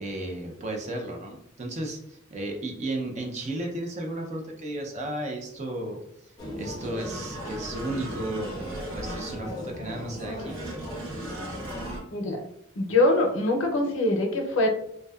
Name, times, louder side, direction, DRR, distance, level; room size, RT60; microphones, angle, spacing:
voice 1, 0.0-6.0 6.6-10.6, right 1 dB, 35° right, 2 dB, 0.5 m, -34 dB
sound 1, 6.4-12.0, equal, 20° left, 0.5 m, -37 dB
sound 2, 7.0-9.6 10.5-12.0, right 1 dB, 85° right, 0.6 m, -41 dB
voice 2, 12.1-12.4 12.8-14.7, left 2 dB, 75° left, 2 dB, 0.6 m, -23 dB
2.6 x 2.1 x 2.3 m, 0.76 s
head